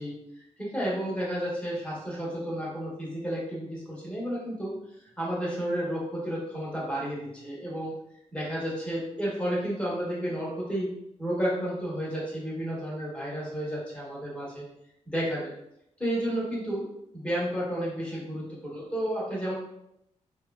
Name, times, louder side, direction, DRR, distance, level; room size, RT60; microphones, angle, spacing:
voice 1, 0.0-4.8 5.2-7.9 8.3-14.6 15.1-15.5 16.0-16.9 17.1-19.5, equal, 10° left, -6 dB, 1.1 m, -32 dB
3.1 x 2.3 x 2.2 m, 0.78 s
wide cardioid pair, 120°, 12 cm